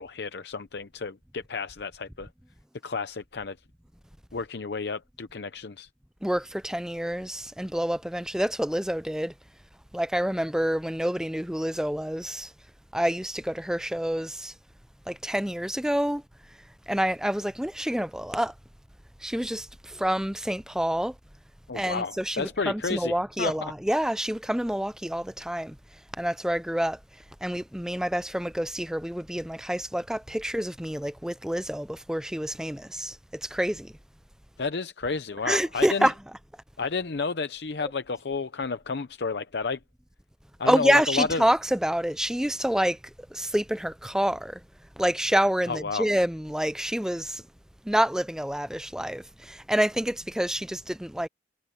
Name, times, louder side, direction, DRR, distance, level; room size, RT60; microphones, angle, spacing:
voice 1, 0.0-2.3 2.8-3.6 4.3-5.9 21.7-23.7 34.6-36.1 36.8-39.8 40.6-41.4 45.7-46.1, left 4 dB, 65° left, 0.7 m, -31 dB
voice 2, 6.2-9.3 9.9-12.5 12.9-14.5 15.1-16.2 16.9-18.5 19.2-21.1 21.7-25.8 26.2-27.0 27.4-33.9 35.4-36.1 37.8-37.9 40.7-43.0 43.3-44.6 45.0-47.4 47.8-51.3, equal, 5° right, 0.6 m, -27 dB
head